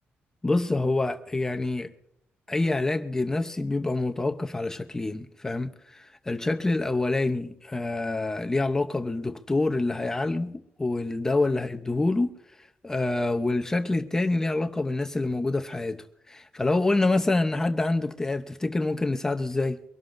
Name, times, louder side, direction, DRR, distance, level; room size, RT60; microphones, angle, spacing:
voice 1, 0.4-1.9 2.5-12.3 12.8-19.8, left 2 dB, 15° left, 0.8 m, -26 dB
24.5 x 12.5 x 2.6 m
cardioid pair, 155°, 4 cm